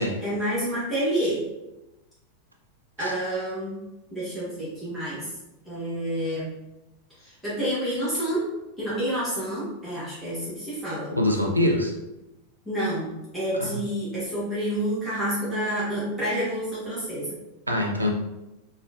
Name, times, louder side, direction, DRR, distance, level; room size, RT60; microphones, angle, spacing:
voice 1, 0.2-1.4 3.0-3.8 4.1-5.2 5.7-6.5 7.2-8.4 8.8-11.1 12.6-17.4, right 1 dB, 10° right, -10 dB, 1.2 m, -28 dB
voice 2, 11.1-11.9 13.6-13.8 17.7-18.1, left 1 dB, 85° right, 1 dB, 0.4 m, -24 dB
3.6 x 2.1 x 2.4 m, 0.97 s
figure-of-eight pair, 90°, 0 cm